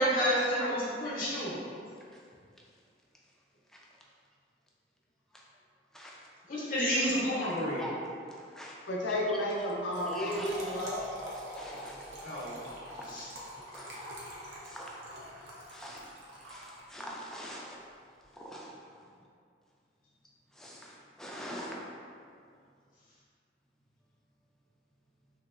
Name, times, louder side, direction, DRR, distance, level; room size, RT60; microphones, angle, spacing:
voice 1, 0.0-1.5 6.5-7.8 12.2-12.6 13.1-13.3, equal, 50° left, -9 dB, 0.7 m, -29 dB
voice 2, 0.6-0.9 1.2-1.3 1.6-1.7 2.1-2.3 3.7-3.8 5.3-5.4 5.9-6.3 7.4-8.8 9.5-9.7 10.1-12.0 12.3-12.5 12.9-13.3 13.6-14.0 14.6-15.0 15.6-17.8 18.2-18.8 20.5-21.8, equal, 5° left, -4 dB, 0.3 m, -44 dB
voice 3, 8.9-11.0, left 1 dB, 85° left, -2 dB, 0.5 m, -32 dB
Trickle dribble / Fill (with liquid), 9.7-17.2, equal, 70° right, 0.6 m, -43 dB
2.9 x 2.7 x 2.4 m, 2.3 s
head